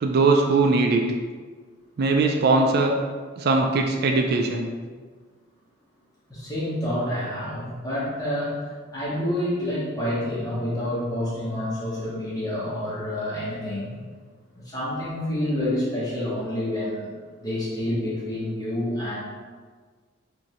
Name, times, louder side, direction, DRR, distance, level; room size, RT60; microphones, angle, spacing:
voice 1, 0.0-1.0 2.0-2.9 3.4-4.7, right 3 dB, 50° right, 2 dB, 0.3 m, -20 dB
voice 2, 6.3-13.9 14.5-17.1 17.4-19.2, left 1 dB, 20° left, -8 dB, 1.2 m, -28 dB
5.1 x 2.7 x 3.0 m, 1.5 s
head